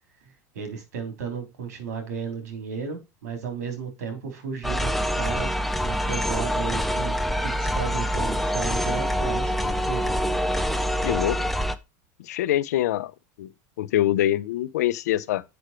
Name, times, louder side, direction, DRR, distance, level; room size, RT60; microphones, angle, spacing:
voice 1, 0.5-5.5 5.8-10.1, right 6 dB, 90° right, 3.8 m, -34 dB
sound 1, 4.6-11.7, equal, ahead, 0.9 m, -25 dB
voice 2, 11.0-11.4 12.2-13.1 13.4-13.5 13.8-15.4, left 13 dB, 85° left, 0.7 m, -24 dB
8.0 x 6.2 x 4.5 m
supercardioid pair, 115°, 9 cm